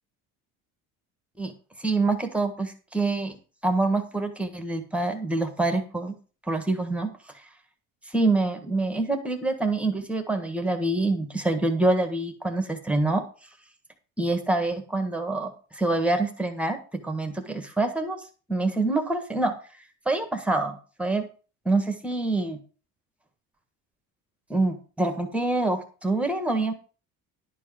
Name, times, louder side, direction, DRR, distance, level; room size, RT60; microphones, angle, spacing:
voice 1, 1.8-3.3 3.6-6.2 6.5-7.1 8.1-13.2 14.2-18.2 18.5-19.5 20.0-21.2 21.6-22.6 24.5-26.7, right 2 dB, 5° right, 6 dB, 1.5 m, -26 dB
11.5 x 4.6 x 7.4 m, 0.37 s
cardioid pair, 155°, 34 cm